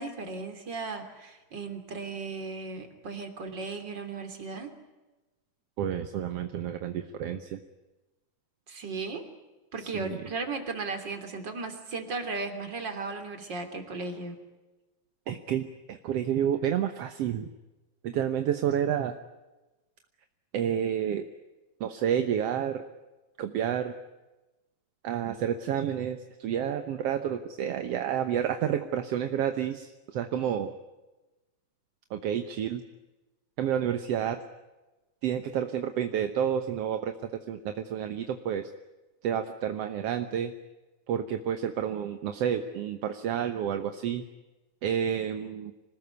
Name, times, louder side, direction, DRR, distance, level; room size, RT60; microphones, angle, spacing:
voice 1, 0.0-4.7 8.7-9.3 9.7-14.4, right 3 dB, 35° right, 6 dB, 3.6 m, -36 dB
voice 2, 5.8-7.6 9.8-10.2 15.3-17.5 18.0-19.2 20.5-21.3 21.8-22.9 23.4-23.9 25.0-30.8 32.1-32.8 33.6-34.4 35.2-37.1 37.5-38.7 39.2-40.5 41.1-44.2 44.8-45.7, right 9 dB, 60° right, 8 dB, 1.8 m, -30 dB
26.0 x 20.0 x 9.5 m, 1.1 s
omnidirectional pair, 3.6 m